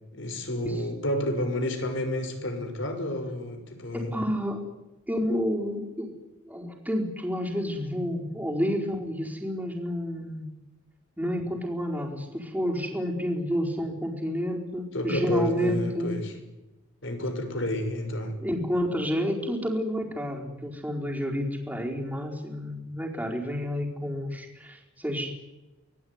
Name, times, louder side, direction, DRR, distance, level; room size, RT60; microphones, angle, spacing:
voice 1, 0.1-4.2 14.9-16.3 17.0-18.4, left 1 dB, 60° left, 7 dB, 5.9 m, -30 dB
voice 2, 0.6-1.0 3.9-4.6 5.1-6.1 6.4-10.5 11.2-16.1 18.4-25.3, equal, 10° right, 0 dB, 4.6 m, -30 dB
25.0 x 20.0 x 9.7 m, 1.0 s
head